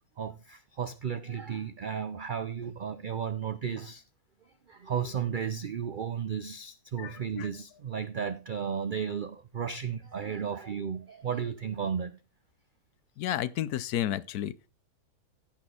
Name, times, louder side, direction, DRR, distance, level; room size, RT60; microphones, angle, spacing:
voice 1, 0.2-4.0 4.7-12.2, right 7 dB, 75° right, 0.4 m, -34 dB
voice 2, 7.0-7.5 13.2-14.5, left 12 dB, 85° left, 1.2 m, -32 dB
14.5 x 6.1 x 3.7 m
omnidirectional pair, 1.6 m